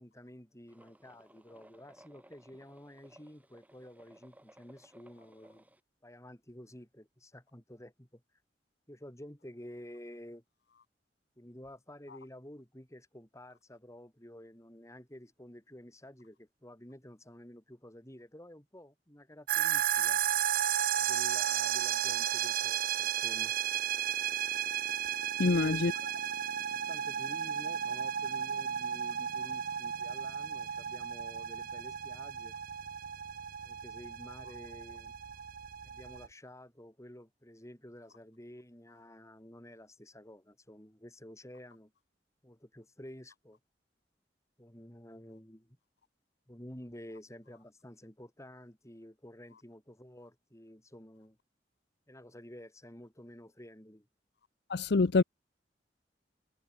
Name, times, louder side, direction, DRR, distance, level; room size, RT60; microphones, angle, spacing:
voice 1, 0.0-5.6 6.0-8.2 8.9-10.4 11.4-20.2 21.0-23.6 25.4-25.9 26.9-32.6 33.6-35.2 35.8-41.9 42.4-43.6 44.6-45.8 46.5-51.4 52.1-54.1, left 1 dB, 15° left, 5.6 m, -51 dB
sound 1, 0.7-5.8, right 1 dB, 10° right, 7.1 m, -60 dB
sound 2, 19.5-36.3, right 10 dB, 55° right, 0.5 m, -33 dB
voice 2, 25.4-25.9 54.7-55.2, left 3 dB, 70° left, 0.6 m, -26 dB
head